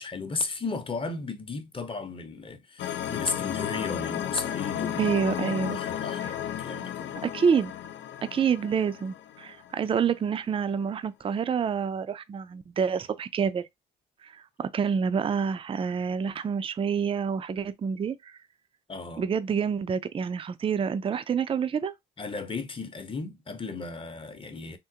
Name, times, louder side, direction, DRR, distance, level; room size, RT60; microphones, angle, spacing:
voice 1, 0.0-5.1 5.5-7.2 18.9-19.2 22.2-24.8, left 3 dB, 25° left, 0.7 m, -35 dB
sound 1, 2.8-9.9, left 11 dB, 65° left, 0.5 m, -33 dB
voice 2, 5.0-5.8 6.2-6.3 7.2-7.7 8.2-13.7 14.2-18.4 19.2-21.9, right 6 dB, 25° right, 0.4 m, -27 dB
3.6 x 2.1 x 2.7 m
cardioid pair, 90°, 20 cm